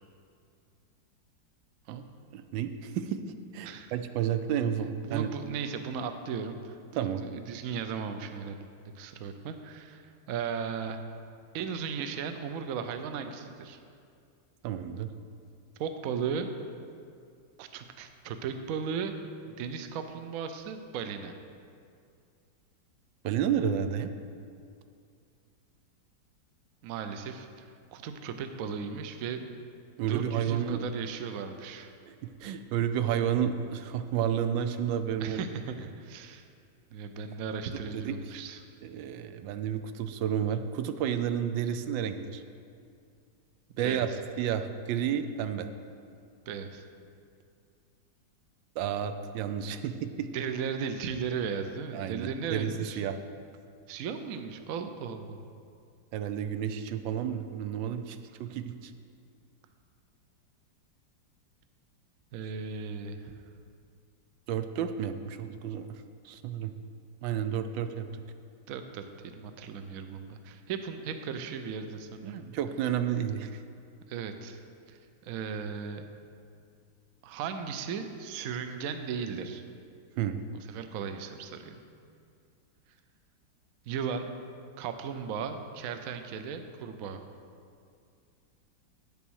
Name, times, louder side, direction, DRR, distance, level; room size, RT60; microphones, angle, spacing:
voice 1, 2.3-3.2 3.5-5.3 6.9-7.2 14.6-15.1 23.2-24.1 30.0-30.9 32.1-35.4 37.9-38.1 38.8-42.4 43.8-44.1 44.4-45.7 48.8-50.3 51.9-53.2 56.1-58.9 64.5-66.7 67.2-68.2 72.2-73.5 80.2-80.4, right 9 dB, 85° right, 9 dB, 1.3 m, -31 dB
voice 2, 5.0-8.7 8.9-11.0 11.5-13.8 15.8-16.5 17.6-19.1 19.6-21.3 26.8-27.7 27.9-29.4 30.1-31.9 35.2-36.4 36.9-38.6 43.8-44.1 46.5-46.8 50.3-53.0 53.9-55.4 62.3-63.3 68.7-72.3 74.1-74.6 74.9-76.0 77.2-79.6 80.5-81.8 83.8-84.3 84.8-87.2, right 6 dB, 65° right, 7 dB, 0.9 m, -36 dB
8.9 x 6.9 x 6.3 m, 2.3 s
omnidirectional pair, 2.0 m